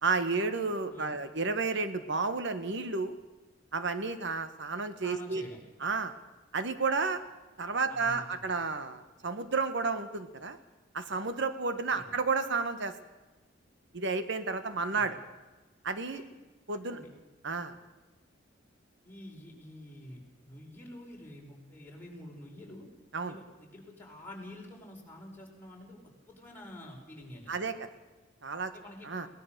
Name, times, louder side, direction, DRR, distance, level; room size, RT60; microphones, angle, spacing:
voice 1, 0.0-3.1 3.7-5.4 5.8-6.1 6.5-7.2 7.6-10.6 10.9-12.9 13.9-15.2 15.8-16.2 16.7-17.0 17.4-17.7 23.1-23.4 27.5-27.8 28.4-28.7 29.0-29.3, right 4 dB, 65° right, 10 dB, 1.4 m, -31 dB
voice 2, 5.0-5.6 7.9-8.7 11.9-12.1 14.9-15.1 16.1-16.3 16.8-17.1 19.0-22.9 23.2-27.6 28.7-29.1, left 1 dB, 10° left, -3 dB, 5.1 m, -48 dB
22.0 x 18.5 x 6.8 m, 1.2 s
head